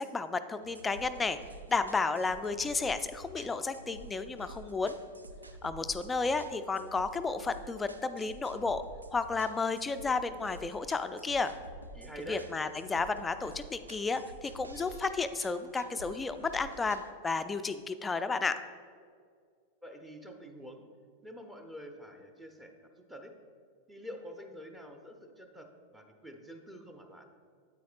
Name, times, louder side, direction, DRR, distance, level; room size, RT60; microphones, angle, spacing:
voice 1, 0.0-1.4 1.7-5.0 5.6-8.8 9.1-11.5 12.3-18.6, left 4 dB, 15° left, 10 dB, 0.4 m, -32 dB
sound 1, 0.6-17.1, right 2 dB, 80° right, 0.4 m, -50 dB
voice 2, 11.9-12.5 19.8-20.8 21.2-23.3 23.9-25.7 25.9-27.3, equal, 10° right, 4 dB, 0.7 m, -47 dB
9.1 x 8.6 x 2.4 m, 2.1 s
figure-of-eight pair, 90°, 0 cm